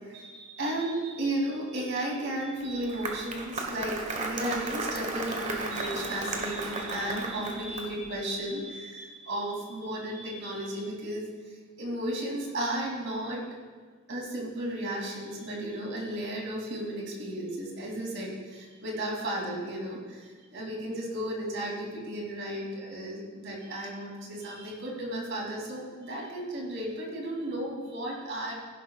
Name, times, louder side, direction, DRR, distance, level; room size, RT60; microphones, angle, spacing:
voice 1, 0.0-13.4 14.1-28.5, right 1 dB, 65° right, -2 dB, 2.9 m, -34 dB
Applause, 2.6-8.1, right 3 dB, 35° right, 1.3 m, -35 dB
15.0 x 11.5 x 2.4 m, 1.5 s
head